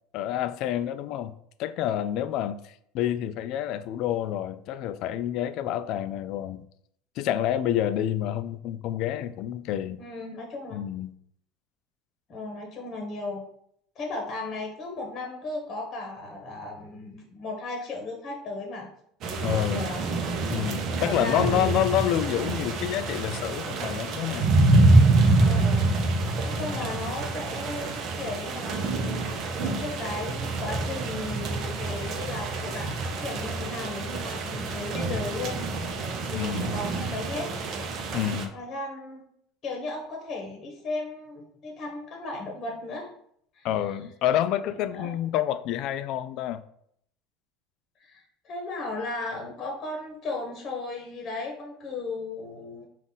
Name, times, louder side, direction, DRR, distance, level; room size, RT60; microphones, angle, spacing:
voice 1, 0.1-1.3 1.6-6.7 7.2-10.0 10.7-11.1 19.4-19.9 20.5-24.5 26.6-26.9 36.3-36.7 38.1-38.5 43.6-46.6, left 11 dB, 55° left, 0.3 m, -28 dB
voice 2, 10.0-10.8 12.3-13.4 13.9-18.9 19.7-20.1 21.0-21.9 25.4-26.2 26.4-35.6 36.3-37.5 38.5-39.2 39.6-43.1 43.5-43.7 44.6-45.1 48.0-52.8, left 2 dB, 35° left, 1.0 m, -36 dB
sound 1, 19.2-38.5, right 2 dB, 45° right, 0.7 m, -26 dB
5.4 x 2.5 x 3.9 m
supercardioid pair, 130°, 0 cm